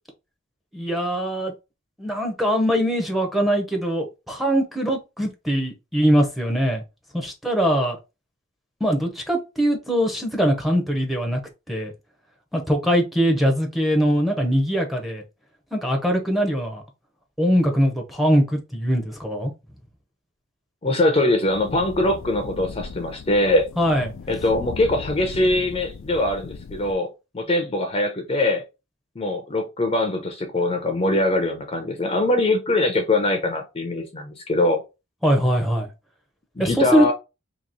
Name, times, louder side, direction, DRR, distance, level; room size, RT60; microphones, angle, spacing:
voice 1, 0.7-1.5 2.0-6.8 7.1-8.0 8.8-11.4 11.7-11.9 12.5-15.2 15.7-16.8 17.4-19.5 23.8-24.1 35.2-35.9 36.6-37.1, equal, ahead, 0.8 m, -22 dB
voice 2, 20.8-23.7 24.3-27.1 27.3-28.6 29.2-34.8 36.6-37.1, left 2 dB, 30° left, 0.6 m, -22 dB
sound 1, 21.4-26.9, left 5 dB, 70° left, 0.4 m, -37 dB
3.0 x 2.8 x 4.0 m
head